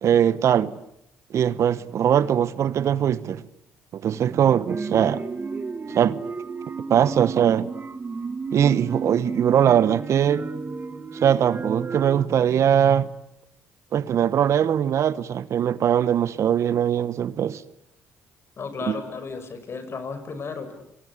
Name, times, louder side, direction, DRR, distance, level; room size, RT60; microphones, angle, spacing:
voice 1, 0.0-0.7 1.3-3.4 3.9-5.3 5.9-6.2 6.9-7.7 8.5-10.5 11.1-13.1 13.9-17.6 18.9-19.0, right 9 dB, 60° right, 1.0 m, -21 dB
sound 1, 4.7-12.3, right 4 dB, 35° right, 1.8 m, -33 dB
voice 2, 18.6-20.7, left 4 dB, 50° left, 5.8 m, -34 dB
30.0 x 20.0 x 9.7 m
hypercardioid pair, 55°, 6 cm